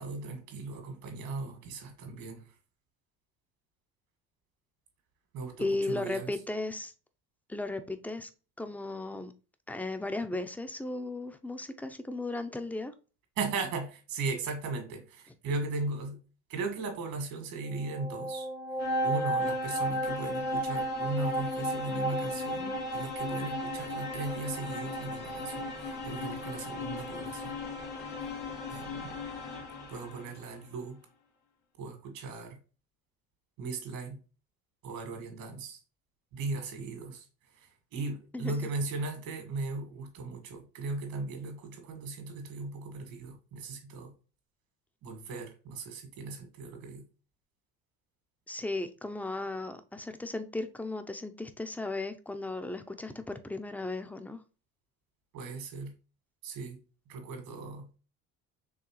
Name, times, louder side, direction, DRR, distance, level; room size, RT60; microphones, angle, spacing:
voice 1, 0.0-2.4 5.3-6.3 13.4-16.2 16.5-18.5 19.0-27.5 28.7-29.2 29.9-31.0 31.8-32.6 33.6-34.2 34.8-35.8 36.3-37.3 37.9-44.1 45.0-47.0 55.3-55.9 56.4-56.8 57.1-57.9, right 3 dB, 75° right, 1.8 m, -37 dB
voice 2, 5.6-6.9 7.5-8.3 8.6-9.3 9.7-12.9 38.3-38.6 48.5-54.4, left 2 dB, 5° left, 0.4 m, -35 dB
sound 1, 17.6-30.4, equal, 90° left, 1.3 m, -34 dB
4.8 x 3.2 x 3.0 m
supercardioid pair, 100°, 34 cm